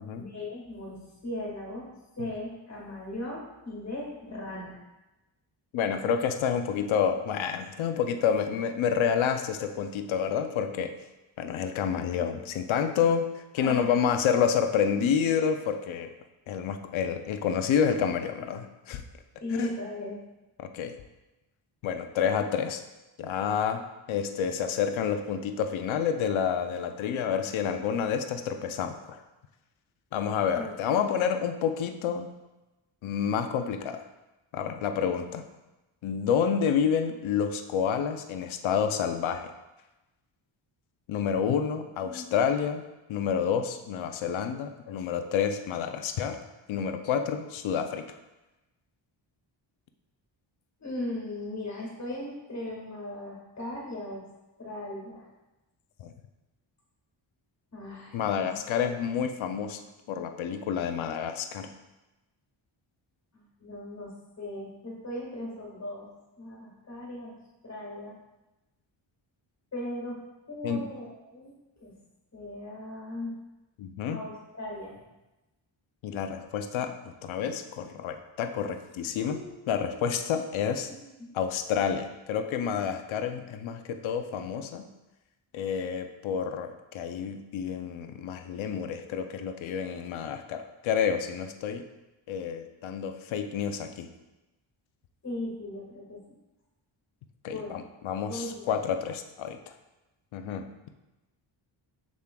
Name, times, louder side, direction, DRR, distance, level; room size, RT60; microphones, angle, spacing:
voice 1, 0.1-1.9 2.2-4.8 13.6-13.9 14.8-15.1 19.4-20.2 30.5-31.0 42.0-42.2 50.8-54.2 54.6-55.2 57.7-58.5 63.3-64.1 64.4-66.1 66.4-67.3 67.6-68.1 69.7-70.2 70.5-71.5 71.8-71.9 72.3-73.3 74.1-75.0 79.2-79.9 81.2-81.3 95.2-96.2 97.5-97.8 98.2-98.7, left 1 dB, 35° left, -3 dB, 1.7 m, -38 dB
voice 2, 5.7-10.9 11.4-13.3 13.5-16.1 16.5-19.0 19.6-19.7 20.6-20.9 21.8-22.8 23.2-23.8 24.1-29.2 30.1-32.3 33.0-34.0 34.5-35.4 36.0-39.5 41.1-42.8 43.1-46.4 46.7-48.1 56.0-56.1 58.1-59.8 60.1-61.7 70.6-70.8 73.8-74.2 76.0-79.4 79.7-80.9 81.3-84.9 85.5-91.8 92.3-94.1 97.4-99.6 100.3-100.7, left 7 dB, 75° left, 6 dB, 0.6 m, -29 dB
6.8 x 6.3 x 2.2 m, 1.0 s
wide cardioid pair, 165°, 48 cm